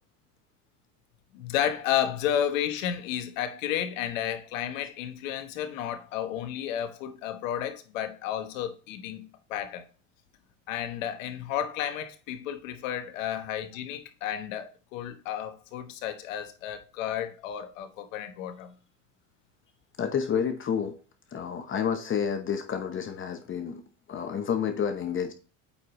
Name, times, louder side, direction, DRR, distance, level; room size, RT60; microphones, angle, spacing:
voice 1, 1.3-9.9 10.7-18.7, left 10 dB, 80° left, 1.2 m, -32 dB
voice 2, 20.0-21.0 21.3-23.8 24.1-25.3, left 7 dB, 30° left, 0.9 m, -29 dB
8.5 x 4.8 x 3.0 m
supercardioid pair, 95°, 39 cm